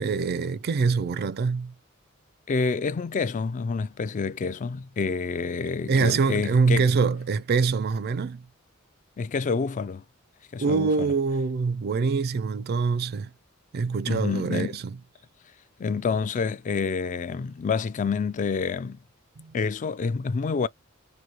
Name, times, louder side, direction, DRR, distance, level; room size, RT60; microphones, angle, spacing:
voice 1, 0.0-1.7 5.9-8.4 10.6-13.3 13.7-15.0 19.4-19.5, right 4 dB, 50° right, 0.4 m, -24 dB
voice 2, 2.5-6.9 9.2-10.0 10.5-11.1 14.1-14.8 15.8-19.0 19.5-20.7, left 5 dB, 35° left, 0.3 m, -28 dB
6.2 x 2.6 x 2.8 m
head